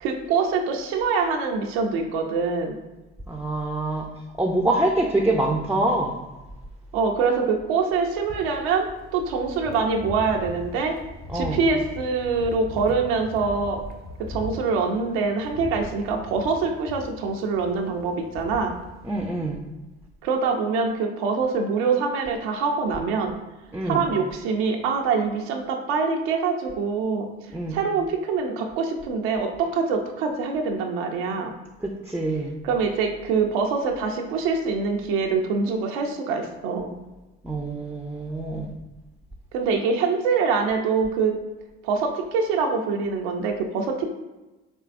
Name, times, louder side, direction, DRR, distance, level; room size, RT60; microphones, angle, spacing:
voice 1, 0.0-2.8 6.9-8.9 9.1-10.9 11.3-13.8 14.3-18.7 20.2-23.4 23.8-27.3 27.7-31.5 32.6-36.9 39.5-41.3 41.8-44.1, right 4 dB, 80° right, 2 dB, 0.5 m, -24 dB
voice 2, 3.3-4.1 4.4-6.2 11.3-11.6 19.0-19.6 23.7-24.1 27.5-27.8 31.8-32.5 37.4-38.7, right 2 dB, 5° right, 1 dB, 0.4 m, -25 dB
sound 1, 8.2-19.3, left 2 dB, 30° left, 0.8 m, -40 dB
4.4 x 3.2 x 2.5 m, 1.1 s
hypercardioid pair, 55°, 31 cm